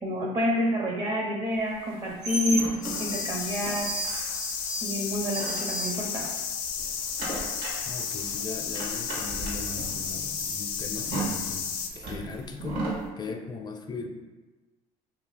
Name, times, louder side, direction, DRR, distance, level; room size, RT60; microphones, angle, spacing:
voice 1, 0.0-2.7 3.0-3.9 4.8-6.3, left 1 dB, 40° right, -1 dB, 0.8 m, -28 dB
sound 1, 1.8-6.4 6.7-13.0, right 2 dB, 70° right, 1.3 m, -35 dB
sound 2, 2.8-11.9, left 7 dB, 75° left, 0.5 m, -33 dB
voice 2, 7.8-14.1, left 4 dB, 30° left, 3 dB, 0.6 m, -39 dB
2.9 x 2.7 x 4.1 m, 1.2 s
supercardioid pair, 75°, 15 cm